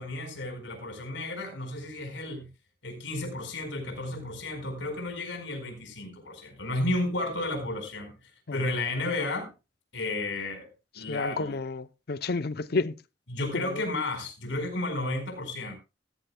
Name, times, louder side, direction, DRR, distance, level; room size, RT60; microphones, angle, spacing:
voice 1, 0.0-2.5 2.8-8.1 8.5-9.5 9.9-10.7 10.9-11.6 13.3-15.7, left 2 dB, 80° left, 4.6 m, -32 dB
voice 2, 11.1-12.9 13.5-13.8, left 3 dB, 55° left, 0.6 m, -30 dB
17.0 x 13.5 x 2.2 m
head